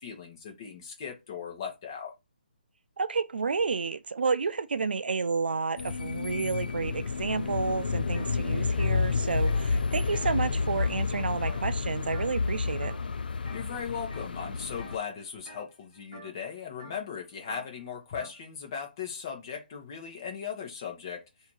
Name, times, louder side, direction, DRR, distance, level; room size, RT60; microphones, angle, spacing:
voice 1, 0.0-2.1 13.5-21.2, left 7 dB, 25° left, 1.1 m, -38 dB
voice 2, 3.0-12.9, right 5 dB, 75° right, 0.5 m, -30 dB
sound 1, 5.8-15.0, left 4 dB, 65° left, 0.5 m, -30 dB
sound 2, 8.1-8.3 8.6-11.2 11.4-11.8 12.1-12.5 12.8-13.6 14.1-14.4 14.7-18.4, equal, 5° right, 1.7 m, -49 dB
3.4 x 2.8 x 4.6 m
hypercardioid pair, 175°, 5 cm